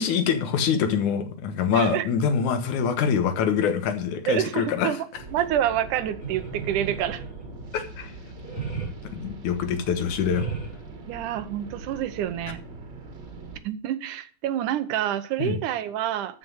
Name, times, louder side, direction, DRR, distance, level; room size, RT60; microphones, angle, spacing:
voice 1, 0.0-5.0 7.7-8.1 9.1-10.5 15.4-15.6, left 7 dB, 75° left, 8 dB, 2.7 m, -25 dB
voice 2, 1.7-2.0 4.3-5.0 5.3-7.2 11.1-12.6 13.6-16.4, right 11 dB, 85° right, 12 dB, 2.4 m, -27 dB
sound 1, 5.1-13.6, right 3 dB, 40° right, 2.2 m, -42 dB
sound 2, 6.2-7.7 8.4-8.9 10.1-10.8, right 5 dB, 35° left, 5.5 m, -34 dB
13.5 x 6.0 x 6.3 m, 0.42 s
omnidirectional pair, 3.6 m